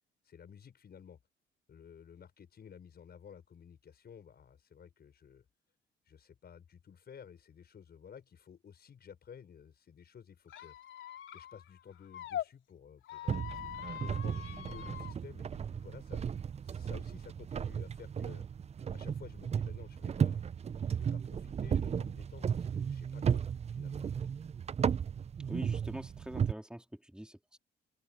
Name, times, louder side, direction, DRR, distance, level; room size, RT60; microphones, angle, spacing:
voice 1, 0.2-1.2 1.7-5.4 6.0-10.7 11.3-13.4 14.0-16.2 16.6-18.4 18.9-20.4 20.9-23.4 23.7-24.0, left 7 dB, 55° left, 6.1 m, -53 dB
Squeak, 10.5-12.5 13.0-15.1, left 11 dB, 75° left, 3.3 m, -43 dB
sound 1, 13.3-26.5, right 7 dB, 35° right, 0.5 m, -35 dB
voice 2, 25.5-27.6, right 1 dB, 5° right, 3.7 m, -44 dB
open air
cardioid pair, 90°, 20 cm